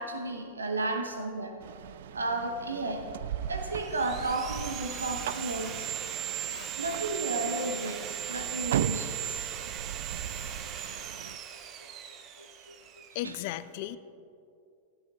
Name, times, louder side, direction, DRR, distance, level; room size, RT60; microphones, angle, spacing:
voice 1, 0.0-1.6 2.1-3.0 3.5-5.9 6.8-9.6 12.4-12.7 13.2-13.4, right 2 dB, 75° right, 5 dB, 0.9 m, -33 dB
sound 1, 1.6-11.4, right 10 dB, 60° right, 0.3 m, -38 dB
Sawing, 3.4-13.2, right 9 dB, 35° right, 0.9 m, -38 dB
voice 2, 13.1-14.0, left 14 dB, 50° left, 15 dB, 0.4 m, -35 dB
16.0 x 15.5 x 2.4 m, 2.5 s
figure-of-eight pair, 90°, 0 cm